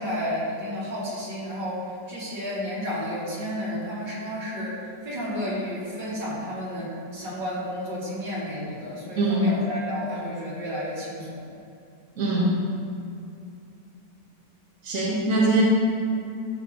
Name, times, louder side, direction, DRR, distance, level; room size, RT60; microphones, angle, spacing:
voice 1, 0.0-11.4, equal, 85° right, -8 dB, 3.3 m, -32 dB
voice 2, 9.2-9.5 12.2-12.5 14.8-15.6, right 2 dB, 45° right, -6 dB, 1.9 m, -22 dB
13.0 x 7.5 x 3.2 m, 2.6 s
omnidirectional pair, 1.9 m